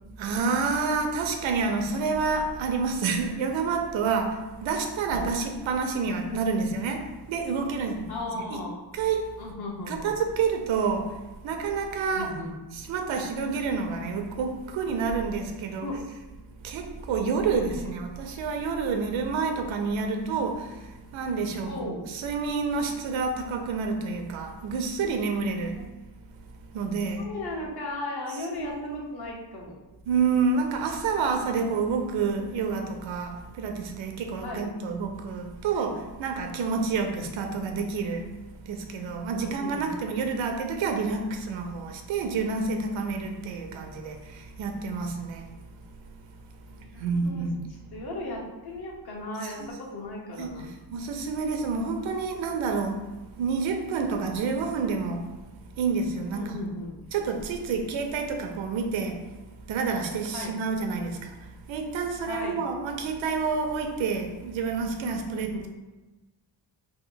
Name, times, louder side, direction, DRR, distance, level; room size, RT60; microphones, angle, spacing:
voice 1, 0.2-8.1 8.5-8.6 8.9-9.3 9.9-11.2 11.4-12.3 12.7-15.9 16.6-20.8 21.1-25.8 26.7-27.2 28.6-29.0 30.1-38.3 38.7-45.5 47.0-47.6 49.4-49.7 50.4-50.6 50.9-53.0 53.4-55.2 55.8-56.5 57.1-59.2 59.7-61.3 61.7-65.7, right 5 dB, 85° right, 0.7 m, -28 dB
voice 2, 8.1-8.8 9.4-10.1 12.1-12.5 15.8-16.0 17.7-17.9 21.7-22.1 25.7-25.9 27.2-29.8 34.4-34.6 39.4-40.0 43.6-43.9 46.7-47.5 47.9-50.7 56.3-57.0 60.3-60.5 62.3-62.6 65.3-65.7, left 2 dB, 55° left, 1.0 m, -36 dB
3.1 x 2.9 x 3.9 m
wide cardioid pair, 145°, 45 cm